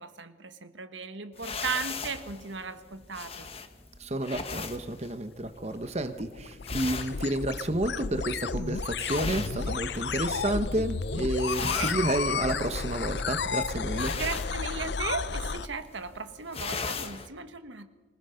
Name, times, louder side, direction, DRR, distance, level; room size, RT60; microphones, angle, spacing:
voice 1, 0.0-3.5 11.6-12.1 14.2-17.9, right 5 dB, 80° right, 10 dB, 1.4 m, -36 dB
sound 1, 1.4-10.3 10.6-11.0 11.3-17.3, left 4 dB, 30° left, 1.3 m, -38 dB
voice 2, 4.0-14.1, right 1 dB, 35° right, 9 dB, 1.0 m, -30 dB
sound 2, 5.8-15.7, left 5 dB, 65° left, 0.6 m, -32 dB
25.5 x 19.5 x 5.8 m, 1.3 s
head